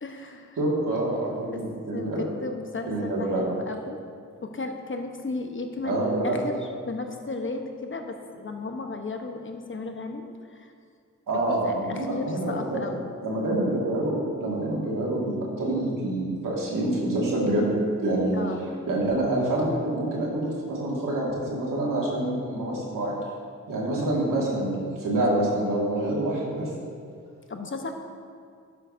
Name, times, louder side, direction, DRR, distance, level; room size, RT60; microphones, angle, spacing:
voice 1, 0.0-0.6 1.5-1.6 1.9-4.0 4.4-10.7 11.3-13.1 18.3-18.6 27.5-27.9, left 3 dB, 40° left, 4 dB, 1.0 m, -35 dB
voice 2, 0.6-2.2 2.9-3.5 5.8-6.4 11.3-12.8 13.2-18.4 18.9-23.2 23.7-26.7, right 1 dB, 85° right, -4 dB, 2.0 m, -26 dB
11.5 x 8.1 x 2.7 m, 2.2 s
cardioid pair, 55°, 32 cm